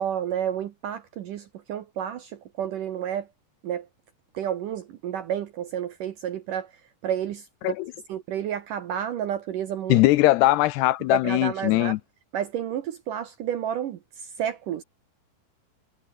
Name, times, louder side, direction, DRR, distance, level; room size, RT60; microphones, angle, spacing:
voice 1, 0.0-3.3 3.6-3.9 4.3-6.7 7.0-7.7 8.1-10.0 11.1-12.0 12.3-14.8, right 10 dB, 70° right, 2.1 m, -30 dB
voice 2, 9.9-12.0, left 17 dB, 85° left, 2.6 m, -20 dB
omnidirectional pair, 5.2 m